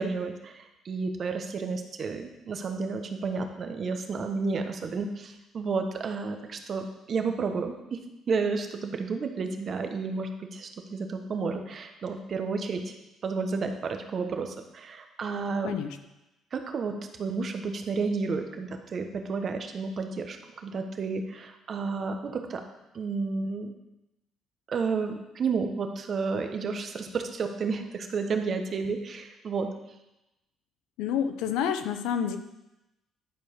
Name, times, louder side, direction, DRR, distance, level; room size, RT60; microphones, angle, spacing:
voice 1, 0.0-8.0 8.3-12.9 13.2-15.8 16.5-20.4 20.6-22.6 22.9-23.7 24.7-29.7, right 4 dB, 45° right, 6 dB, 1.1 m, -31 dB
voice 2, 15.6-16.0 31.0-32.4, left 8 dB, 90° left, 9 dB, 0.7 m, -29 dB
11.0 x 4.7 x 5.4 m, 0.95 s
cardioid pair, 90°, 0 cm